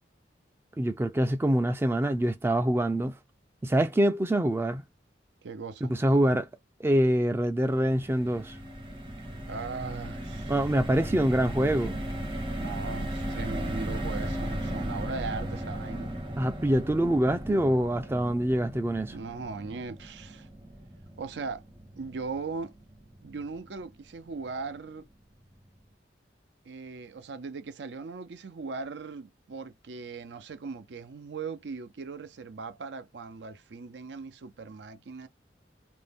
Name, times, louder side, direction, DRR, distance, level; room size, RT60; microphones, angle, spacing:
voice 1, 0.8-3.2 3.6-4.8 5.8-6.5 6.8-8.6 10.5-12.0 16.4-19.1, right 1 dB, 15° right, 0.3 m, -25 dB
voice 2, 5.4-5.9 9.5-10.6 10.9-11.9 12.6-16.1 19.1-20.5 21.2-21.6 22.0-22.7 23.2-25.1 26.7-35.3, right 4 dB, 75° right, 0.5 m, -39 dB
sound 1, 7.7-24.0 24.4-24.5 24.8-25.0, right 1 dB, 30° right, 0.7 m, -37 dB
2.5 x 2.1 x 3.3 m
head